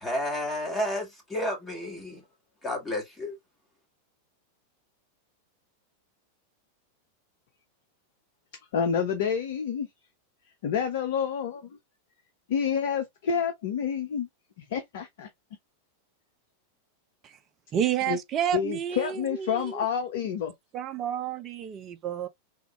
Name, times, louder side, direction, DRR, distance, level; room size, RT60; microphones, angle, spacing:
voice 1, 0.0-2.2 2.6-3.4, left 1 dB, 15° left, 1.3 m, -31 dB
voice 2, 8.7-9.9 10.6-11.8 12.5-14.3 14.6-15.3 18.1-18.2 18.5-20.5, left 7 dB, 55° left, 0.5 m, -28 dB
voice 3, 17.7-19.9 20.7-22.3, right 10 dB, 30° right, 0.5 m, -30 dB
3.5 x 2.5 x 2.9 m
figure-of-eight pair, 90°, 0 cm